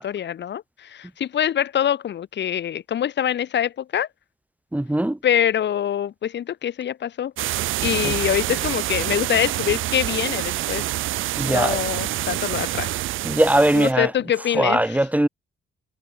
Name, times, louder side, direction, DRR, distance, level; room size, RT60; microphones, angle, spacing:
voice 1, 0.0-4.1 5.2-7.3 7.8-10.8 11.5-12.9 13.7-15.1, left 10 dB, 65° left, 3.7 m, -24 dB
voice 2, 4.7-5.2 11.4-11.8 13.2-14.1 14.6-15.3, right 1 dB, 5° right, 3.1 m, -20 dB
sound 1, 7.4-13.9, right 15 dB, 85° right, 4.4 m, -27 dB
cardioid pair, 90°, 20 cm